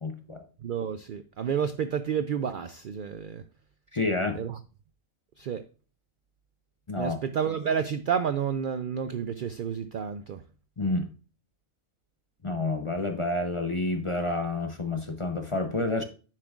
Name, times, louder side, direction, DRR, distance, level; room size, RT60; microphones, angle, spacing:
voice 1, 0.0-0.4 3.9-4.4 6.9-7.2 10.8-11.1 12.4-16.0, left 2 dB, 35° left, 5 dB, 0.5 m, -29 dB
voice 2, 0.6-3.4 4.4-4.6 5.4-5.6 7.0-10.4, right 7 dB, 80° right, 11 dB, 0.4 m, -30 dB
9.7 x 7.5 x 2.4 m, 0.36 s
omnidirectional pair, 1.4 m